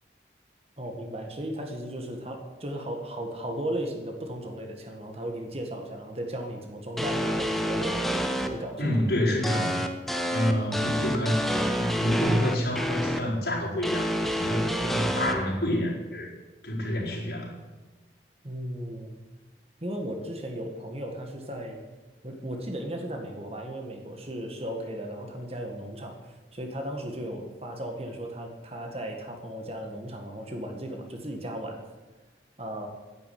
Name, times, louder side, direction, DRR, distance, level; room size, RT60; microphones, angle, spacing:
voice 1, 0.8-8.1 8.4-9.0 10.9-11.4 18.4-19.1 19.8-21.8 22.2-31.8 32.6-32.9, right 1 dB, 35° right, 3 dB, 1.8 m, -36 dB
sound 1, 7.0-8.5 9.4-13.2 13.8-15.3, equal, ahead, 1.0 m, -28 dB
voice 2, 8.8-9.8 10.3-16.3 16.6-17.5, equal, 70° left, -4 dB, 4.8 m, -28 dB
11.0 x 10.0 x 9.4 m, 1.2 s
head